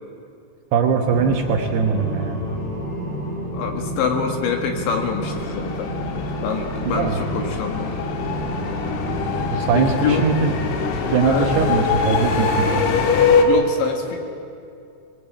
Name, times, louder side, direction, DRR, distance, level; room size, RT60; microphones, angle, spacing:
voice 1, 0.7-2.4 6.8-7.2 9.5-10.5 11.0-13.0, right 6 dB, 70° right, 3 dB, 2.7 m, -21 dB
sound 1, 1.0-12.8, equal, 35° left, 3.5 m, -30 dB
voice 2, 3.5-5.9 6.4-8.0 9.8-10.3 11.2-11.5 13.4-14.2, left 6 dB, 70° left, 4 dB, 4.0 m, -25 dB
sound 2, 5.2-13.5, left 6 dB, 85° left, 4.4 m, -23 dB
22.5 x 20.5 x 8.7 m, 2.4 s
omnidirectional pair, 5.7 m